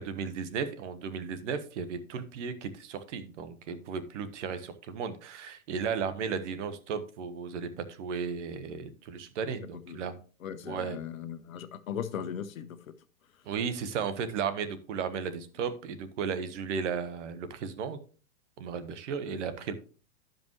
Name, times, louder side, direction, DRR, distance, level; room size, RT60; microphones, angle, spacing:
voice 1, 0.0-10.1 10.6-11.0 13.4-18.0 18.6-19.8, right 6 dB, 65° right, 12 dB, 1.3 m, -35 dB
voice 2, 10.4-12.8 13.3-13.4, left 8 dB, 80° left, 10 dB, 1.1 m, -38 dB
12.5 x 5.2 x 3.1 m, 0.37 s
hypercardioid pair, 125°, 40 cm